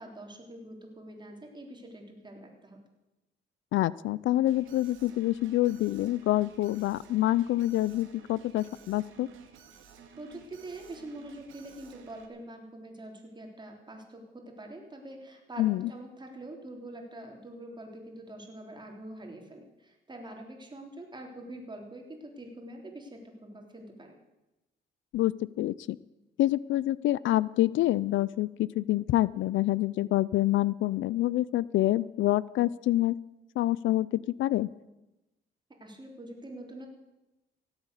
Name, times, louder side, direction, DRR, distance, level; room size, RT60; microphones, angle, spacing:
voice 1, 0.0-2.8 10.2-24.1 35.7-36.9, right 1 dB, 20° right, 2 dB, 3.5 m, -45 dB
voice 2, 3.7-9.3 15.6-15.9 25.1-26.0 26.4-33.1 33.6-34.1 34.4-34.7, left 15 dB, 75° left, 21 dB, 0.4 m, -27 dB
Alarm, 4.5-12.3, right 8 dB, 85° right, 2.1 m, -53 dB
16.5 x 8.1 x 8.2 m, 0.99 s
cardioid pair, 90°, 20 cm